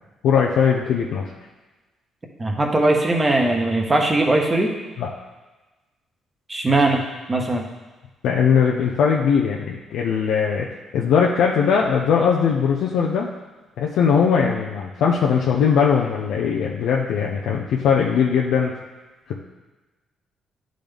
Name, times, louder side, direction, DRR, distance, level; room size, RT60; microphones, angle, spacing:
voice 1, 0.2-1.3 5.0-5.1 8.2-10.7 10.9-13.3 13.8-18.7 19.3-19.4, left 6 dB, 80° left, -2 dB, 0.6 m, -20 dB
voice 2, 2.4-4.7 6.5-7.0 7.3-7.7, right 2 dB, 25° right, 1 dB, 1.2 m, -19 dB
10.5 x 3.9 x 3.4 m, 1.2 s
cardioid pair, 90°, 0 cm